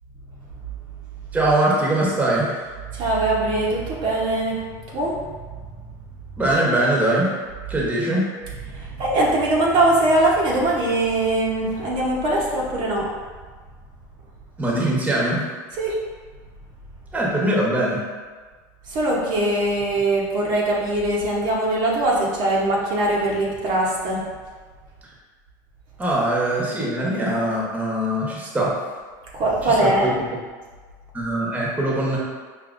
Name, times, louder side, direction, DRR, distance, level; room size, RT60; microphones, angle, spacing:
voice 1, 1.3-2.6 6.4-7.3 7.7-8.2 14.6-15.4 17.1-18.0 26.0-28.7 29.6-30.3 31.1-32.2, right 1 dB, 15° right, -4 dB, 1.1 m, -22 dB
voice 2, 2.9-4.7 4.9-5.3 8.7-13.1 15.8-16.0 18.9-24.2 29.3-30.2, right 1 dB, 55° right, -5 dB, 1.0 m, -21 dB
5.1 x 2.7 x 2.5 m, 1.4 s
supercardioid pair, 105°, 10 cm